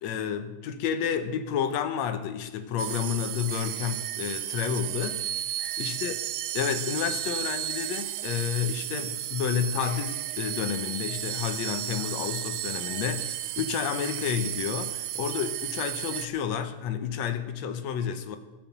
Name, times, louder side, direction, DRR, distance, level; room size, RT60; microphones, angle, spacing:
voice 1, 0.0-5.3 5.8-6.2 6.5-18.4, left 8 dB, 70° left, 1.9 m, -30 dB
sound 1, 2.8-16.3, right 14 dB, 80° right, 1.9 m, -33 dB
20.5 x 7.1 x 5.9 m
omnidirectional pair, 3.8 m